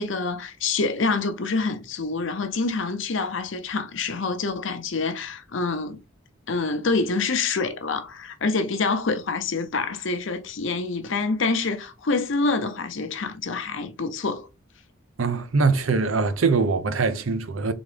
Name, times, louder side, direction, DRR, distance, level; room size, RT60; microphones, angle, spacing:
voice 1, 0.0-6.0 6.5-14.5, left 3 dB, 70° left, 0.7 m, -26 dB
voice 2, 15.2-17.7, right 4 dB, 85° right, 0.7 m, -22 dB
3.9 x 3.6 x 3.3 m
head